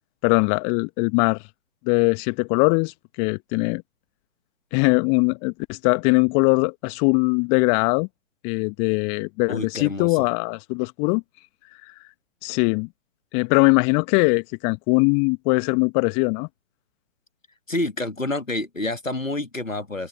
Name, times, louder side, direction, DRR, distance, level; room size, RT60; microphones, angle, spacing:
voice 1, 0.2-1.4 1.8-3.8 4.7-8.1 8.4-11.2 11.8-11.9 12.4-12.9 13.3-16.5, left 38 dB, 15° left, 1.3 m, -21 dB
voice 2, 9.5-10.3 17.7-20.1, left 2 dB, 85° left, 2.1 m, -28 dB
open air
figure-of-eight pair, 135°, 38 cm